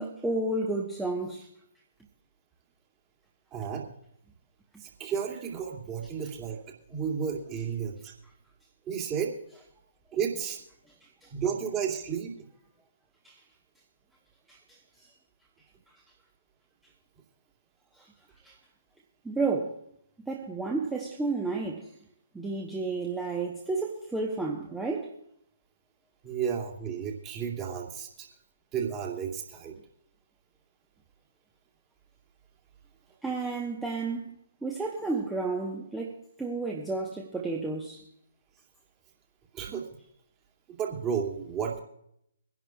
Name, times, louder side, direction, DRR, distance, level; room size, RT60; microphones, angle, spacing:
voice 1, 0.0-1.5 11.0-11.3 13.2-13.4 14.5-15.1 18.0-18.1 18.4-18.6 19.2-19.8 20.3-21.9 22.3-25.1 33.2-34.3 34.6-38.0, right 3 dB, 5° right, 1.1 m, -32 dB
voice 2, 3.5-3.9 4.8-6.6 6.9-8.1 8.9-9.3 10.1-10.6 11.3-12.3 26.2-28.3 28.7-29.7 39.5-39.9 40.7-41.8, right 7 dB, 20° right, 2.5 m, -32 dB
24.0 x 11.0 x 2.4 m
figure-of-eight pair, 135°, 0 cm